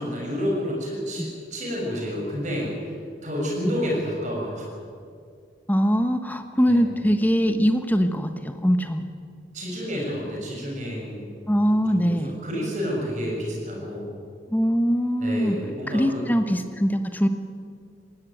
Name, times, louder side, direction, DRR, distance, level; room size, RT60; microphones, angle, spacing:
voice 1, 0.0-2.9 3.2-4.6 6.7-6.8 9.5-11.4 11.9-14.2 15.2-16.2, equal, 40° right, -2 dB, 7.2 m, -29 dB
voice 2, 5.7-9.0 11.5-12.3 14.5-15.6 15.9-17.3, equal, 10° left, 8 dB, 1.2 m, -22 dB
20.0 x 17.5 x 9.3 m, 2.3 s
head